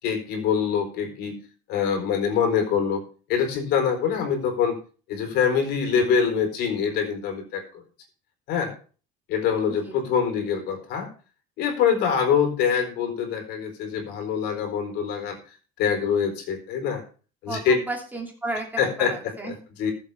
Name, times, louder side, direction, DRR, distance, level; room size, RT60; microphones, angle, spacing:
voice 1, 0.0-1.4 1.7-3.0 3.3-4.8 5.1-7.8 8.5-8.7 9.3-11.1 11.6-15.4 15.8-17.0 17.4-17.8 18.8-19.1 19.8-19.9, left 7 dB, 60° left, 5 dB, 4.1 m, -24 dB
voice 2, 17.5-19.6, right 2 dB, 10° right, 0 dB, 2.9 m, -33 dB
19.5 x 7.4 x 3.5 m, 0.38 s
cardioid pair, 155°, 19 cm